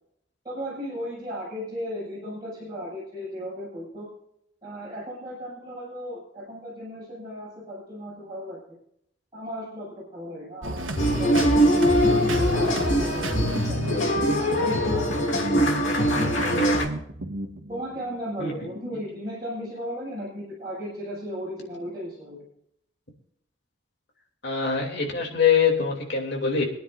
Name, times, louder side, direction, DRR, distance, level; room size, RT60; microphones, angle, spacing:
voice 1, 0.4-4.1 4.6-8.8 9.3-12.0 12.4-15.5 15.8-16.8 17.7-22.5 25.2-25.3, equal, 20° right, -9 dB, 6.6 m, -36 dB
sound 1, 10.6-18.1, right 1 dB, 90° right, 1.7 m, -31 dB
sound 2, 11.0-16.8, equal, 85° left, 2.8 m, -22 dB
voice 2, 24.4-26.6, left 6 dB, 60° left, 1 dB, 2.9 m, -23 dB
25.5 x 9.8 x 2.6 m, 0.73 s
head